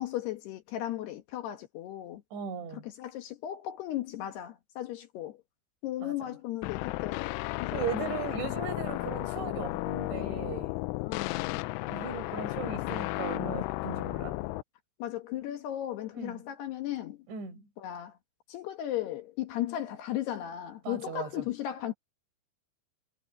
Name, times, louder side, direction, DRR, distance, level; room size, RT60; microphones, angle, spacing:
voice 1, 0.0-2.2 2.7-5.4 5.8-8.1 11.0-11.6 15.0-17.3 17.8-18.2 18.5-21.9, left 13 dB, 65° left, 3.1 m, -36 dB
voice 2, 2.3-2.8 6.0-6.1 7.7-10.7 11.9-14.4 16.2-16.4 17.3-17.7 20.9-21.4, right 6 dB, 70° right, 7.1 m, -38 dB
sound 1, 6.6-14.6, left 21 dB, 90° left, 3.1 m, -34 dB
omnidirectional pair, 5.5 m